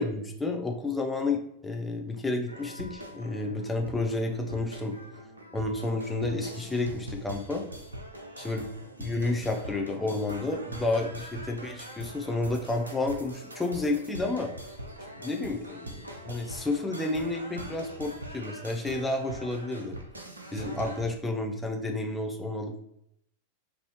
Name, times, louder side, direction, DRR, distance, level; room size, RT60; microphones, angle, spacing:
voice 1, 0.0-4.9 5.5-7.6 8.4-8.7 9.0-14.5 15.2-16.0 16.3-20.0 20.5-22.8, left 2 dB, 10° left, 2 dB, 0.6 m, -31 dB
sound 1, 2.5-21.0, right 1 dB, 85° right, 0.5 m, -42 dB
4.7 x 2.7 x 3.0 m, 0.76 s
figure-of-eight pair, 90°, 0 cm